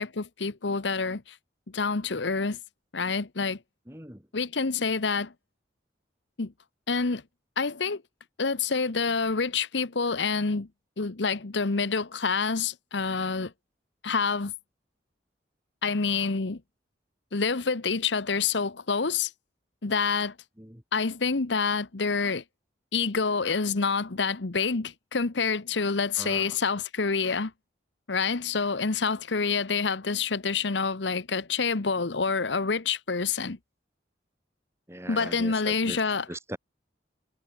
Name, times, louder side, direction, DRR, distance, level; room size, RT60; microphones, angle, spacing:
voice 1, 0.0-1.4 1.7-2.6 2.9-3.6 4.3-5.3 6.4-6.5 6.9-7.2 7.6-8.0 8.4-10.7 11.0-13.5 14.0-14.5 15.8-16.6 17.3-19.3 19.8-20.3 20.9-22.4 22.9-27.5 28.1-33.6 35.1-36.2, left 5 dB, 75° left, 1.0 m, -27 dB
voice 2, 3.9-4.3 20.6-20.8 26.2-26.6 34.9-36.0 36.3-36.6, right 1 dB, 15° right, 3.2 m, -40 dB
head